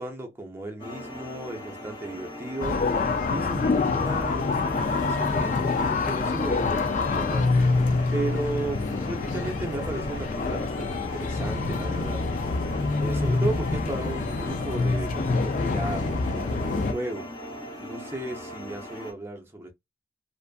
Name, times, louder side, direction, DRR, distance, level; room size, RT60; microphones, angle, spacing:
voice 1, 0.0-2.8 3.2-7.6 8.1-12.3 13.0-17.3 17.8-19.7, right 2 dB, 15° right, 0.5 m, -35 dB
sound 1, 0.8-19.1, equal, 25° left, 0.7 m, -39 dB
sound 2, 2.6-16.9, left 3 dB, 45° left, 0.3 m, -26 dB
2.5 x 2.4 x 2.3 m
head